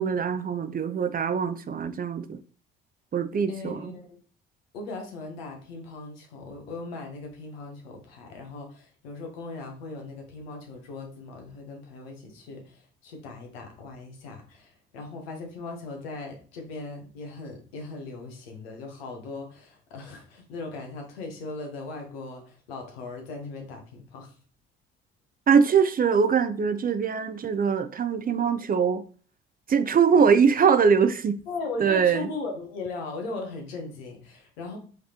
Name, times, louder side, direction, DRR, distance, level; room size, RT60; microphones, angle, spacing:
voice 1, 0.0-2.4 3.1-3.9 25.5-29.0 29.7-31.4 31.8-32.3, right 6 dB, 30° right, 0.5 m, -22 dB
voice 2, 3.5-4.2 4.7-24.3 31.5-34.8, left 3 dB, 80° left, 1.0 m, -38 dB
4.8 x 3.2 x 2.9 m
hypercardioid pair, 50°, 30 cm